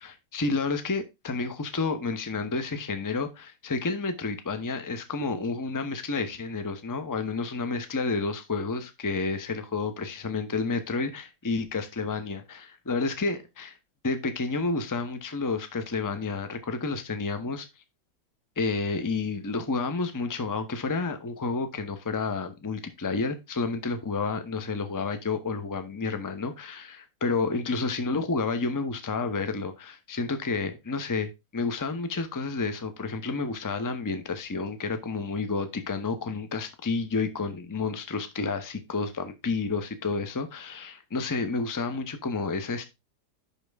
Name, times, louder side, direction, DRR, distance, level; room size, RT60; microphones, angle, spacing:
voice 1, 0.0-13.8 14.0-17.7 18.6-42.9, left 4 dB, 15° left, 0.7 m, -30 dB
10.5 x 4.5 x 3.5 m
omnidirectional pair, 1.8 m